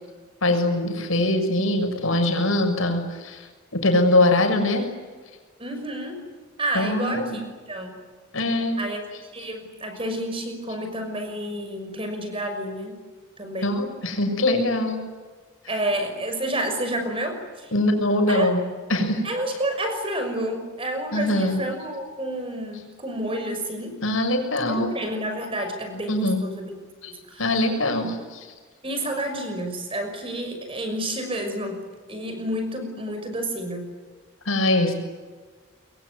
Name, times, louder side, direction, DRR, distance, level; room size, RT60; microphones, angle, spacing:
voice 1, 0.4-3.5 3.7-4.9 6.7-7.4 8.3-8.8 13.6-15.0 17.7-18.6 18.9-19.2 21.1-21.6 24.0-24.9 26.1-26.4 27.0-27.1 27.4-28.5 34.4-34.9, left 1 dB, 90° left, 4 dB, 6.7 m, -22 dB
voice 2, 5.6-6.2 6.6-7.4 7.7-8.1 8.8-9.0 9.3-13.0 13.4-13.8 15.7-17.7 18.3-18.5 19.2-24.0 24.7-26.7 27.1-27.4 28.8-31.8 32.1-33.9, right 1 dB, 25° right, 5 dB, 6.1 m, -30 dB
26.0 x 23.0 x 9.6 m, 1.4 s
head